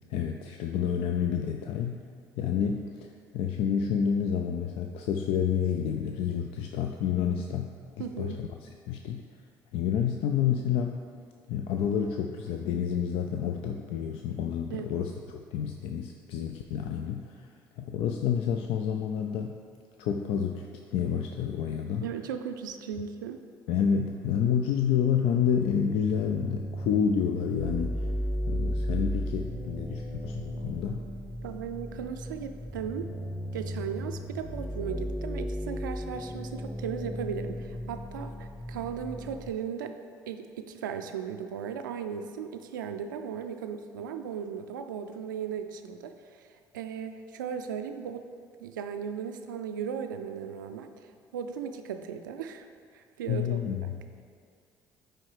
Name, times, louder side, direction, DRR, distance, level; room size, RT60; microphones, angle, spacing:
voice 1, 0.1-2.0 2.4-7.7 8.0-9.2 9.7-11.0 11.5-17.5 17.8-19.6 20.0-22.1 23.7-28.1 28.5-31.0 53.3-54.0, left 8 dB, 65° left, 4 dB, 0.4 m, -29 dB
voice 2, 8.0-8.4 14.7-14.9 22.0-23.4 31.4-33.1 33.5-40.0 40.3-46.5 46.7-48.3 48.6-52.7 52.9-53.6, right 7 dB, 90° right, 7 dB, 0.4 m, -37 dB
sound 1, 25.8-39.5, equal, 15° left, 1.1 m, -35 dB
8.8 x 3.2 x 4.8 m, 2.3 s
hypercardioid pair, 55°, 10 cm